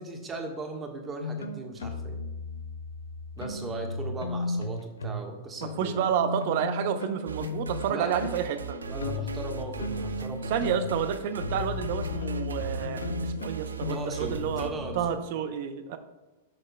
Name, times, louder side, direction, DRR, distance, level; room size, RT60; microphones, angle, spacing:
voice 1, 0.0-2.2 3.4-6.1 7.8-8.2 8.8-10.9 13.9-15.1, right 3 dB, 20° right, 3 dB, 1.5 m, -38 dB
sound 1, 1.2-5.3 5.6-15.1, left 3 dB, 75° left, 0.7 m, -35 dB
voice 2, 5.6-8.8 10.5-16.0, right 8 dB, 50° right, 10 dB, 0.7 m, -30 dB
sound 2, 7.3-14.7, right 5 dB, 80° right, 0.5 m, -38 dB
14.0 x 6.4 x 2.3 m, 1.1 s
figure-of-eight pair, 100°, 0 cm